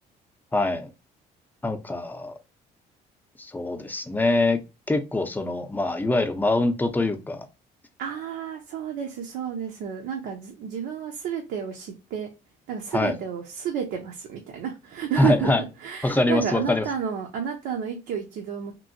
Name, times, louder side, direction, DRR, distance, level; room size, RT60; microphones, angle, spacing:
voice 1, 0.5-0.9 1.6-2.3 3.4-4.6 4.9-7.5 12.9-13.1 15.2-15.6 16.0-16.8, left 2 dB, 10° left, 7 dB, 0.6 m, -24 dB
voice 2, 8.0-12.3 12.7-18.7, right 8 dB, 80° right, 2 dB, 0.7 m, -31 dB
3.0 x 2.7 x 2.5 m, 0.27 s
cardioid pair, 110°, 17 cm